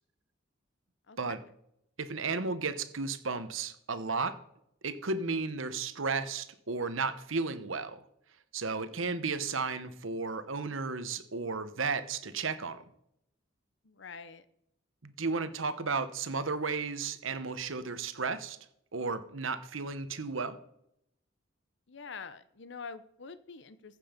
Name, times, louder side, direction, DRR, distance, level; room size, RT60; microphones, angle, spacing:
voice 1, 1.1-1.4 13.8-14.4 21.9-24.0, left 5 dB, 65° left, 13 dB, 0.8 m, -46 dB
voice 2, 2.0-4.4 4.8-8.0 8.5-12.8 15.0-18.6 18.9-20.6, right 4 dB, 85° right, 12 dB, 1.1 m, -34 dB
15.0 x 7.5 x 5.1 m, 0.76 s
head